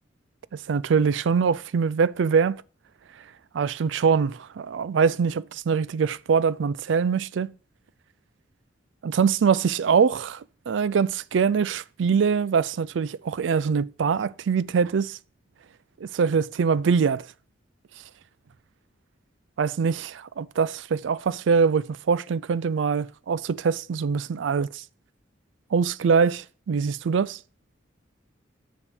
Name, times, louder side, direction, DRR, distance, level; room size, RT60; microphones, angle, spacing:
voice 1, 0.5-2.6 3.5-7.5 9.0-15.2 16.0-17.3 19.6-24.8 25.7-27.4, right 6 dB, 70° right, 0.4 m, -23 dB
9.8 x 3.6 x 6.3 m
head